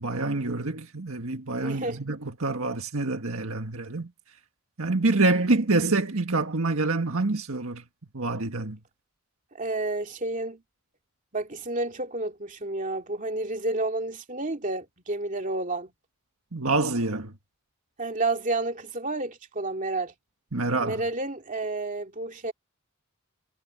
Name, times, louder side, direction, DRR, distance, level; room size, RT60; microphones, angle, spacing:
voice 1, 0.0-4.1 4.8-7.8 8.1-8.8 16.5-17.3 20.5-21.0, right 3 dB, 70° right, 1.7 m, -26 dB
voice 2, 1.6-2.0 9.5-10.6 11.3-15.9 18.0-20.1 20.8-22.5, right 2 dB, 35° right, 2.6 m, -30 dB
head